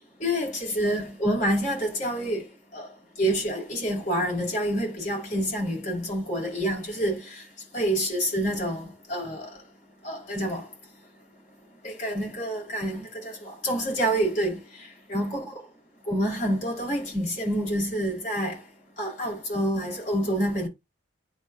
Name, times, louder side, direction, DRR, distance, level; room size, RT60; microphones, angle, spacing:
voice 1, 0.2-2.5 2.7-2.9 3.2-7.4 7.7-9.5 10.0-10.6 11.8-14.6 15.1-15.5 16.1-18.6 19.0-20.7, equal, 45° left, 5.2 m, -27 dB
11.0 x 4.0 x 2.8 m
head